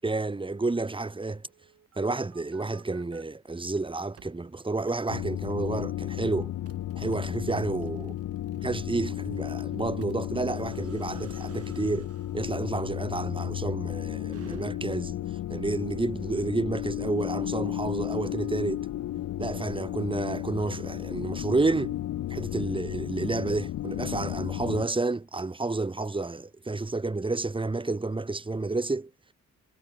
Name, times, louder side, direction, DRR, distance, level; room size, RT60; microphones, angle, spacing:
voice 1, 0.0-1.5 2.0-6.5 7.0-8.1 8.6-15.2 15.5-18.9 19.4-21.9 22.3-29.1, right 3 dB, 15° right, 2.8 m, -30 dB
sound 1, 1.5-3.2 3.7-4.4 4.9-5.0 5.5-5.7 6.1-15.1, right 7 dB, 50° right, 6.5 m, -56 dB
sound 2, 5.1-24.9, left 13 dB, 75° left, 2.3 m, -34 dB
cardioid pair, 90°, 30 cm